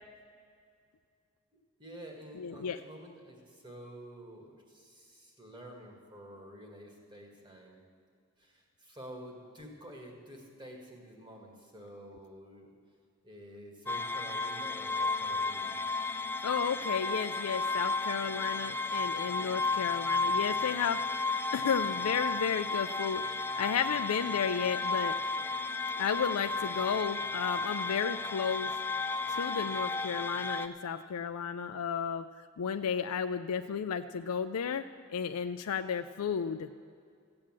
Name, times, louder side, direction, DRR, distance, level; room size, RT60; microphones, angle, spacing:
voice 1, 1.8-7.8 8.4-12.7 13.2-15.8, equal, 20° right, 1 dB, 2.0 m, -49 dB
voice 2, 2.4-2.8 16.4-21.2 21.5-25.2 26.0-28.7 29.3-32.3 32.6-34.8 35.1-36.7, left 7 dB, 90° left, 8 dB, 0.4 m, -33 dB
sound 1, 13.9-30.7, left 3 dB, 10° left, 0.4 m, -33 dB
15.5 x 8.7 x 7.4 m, 2.4 s
head